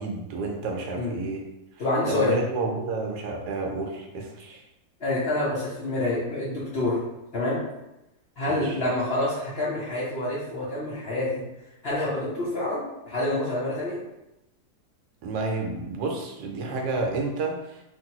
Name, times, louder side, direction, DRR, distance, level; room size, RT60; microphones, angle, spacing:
voice 1, 0.0-1.4 2.1-4.6 8.5-8.8 15.2-17.8, right 3 dB, 80° right, 1 dB, 1.1 m, -30 dB
voice 2, 1.8-2.4 5.0-7.0 7.3-7.6 8.4-11.4 11.8-14.0, left 2 dB, 50° left, -8 dB, 0.8 m, -27 dB
3.1 x 2.6 x 2.8 m, 0.92 s
omnidirectional pair, 1.8 m